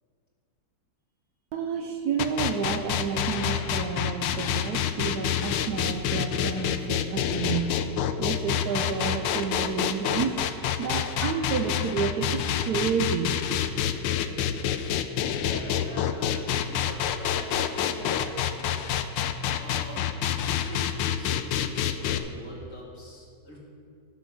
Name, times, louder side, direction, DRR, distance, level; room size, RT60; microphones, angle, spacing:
voice 1, 1.5-7.7 8.2-10.5 10.8-13.3, right 6 dB, 65° right, 5 dB, 1.1 m, -30 dB
sound 1, 2.2-22.2, left 9 dB, 85° left, 1.3 m, -27 dB
voice 2, 15.4-18.8 19.5-23.6, equal, 45° left, -3 dB, 2.5 m, -44 dB
13.0 x 6.4 x 6.4 m, 2.3 s
omnidirectional pair, 2.0 m